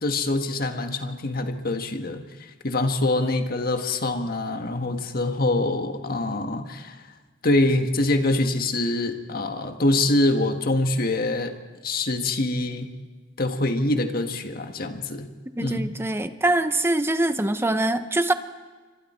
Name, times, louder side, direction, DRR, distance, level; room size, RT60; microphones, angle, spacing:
voice 1, 0.0-7.0 7.4-11.5 11.8-12.9 13.4-15.3 15.6-15.9, left 2 dB, 50° left, 6 dB, 1.6 m, -25 dB
voice 2, 15.6-18.3, right 1 dB, 10° right, 10 dB, 0.8 m, -23 dB
28.5 x 24.5 x 4.4 m, 1.4 s
head